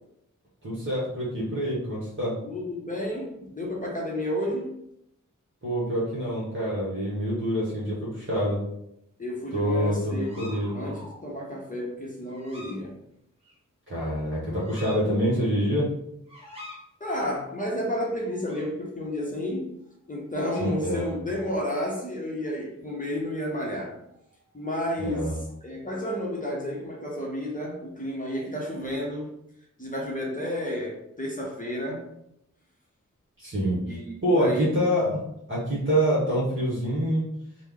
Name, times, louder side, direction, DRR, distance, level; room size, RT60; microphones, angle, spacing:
voice 1, 0.6-2.4 5.6-8.6 9.5-10.9 13.9-15.9 20.6-21.2 25.0-25.4 33.4-35.2 35.5-37.3, equal, 40° right, -7 dB, 1.1 m, -26 dB
voice 2, 2.4-4.8 9.2-13.0 17.0-19.8 20.1-23.9 24.5-29.3 29.8-32.0 33.9-34.7, left 1 dB, 25° left, -2 dB, 0.8 m, -31 dB
sound 1, 8.3-8.4 10.1-11.3 12.3-12.8 13.4-13.5 14.5-15.0 16.3-16.8 18.2-18.7 19.9-20.1 20.4-20.7 24.0-24.7, left 1 dB, 20° right, 1.2 m, -46 dB
3.2 x 2.1 x 3.6 m, 0.78 s
wide cardioid pair, 70°, 32 cm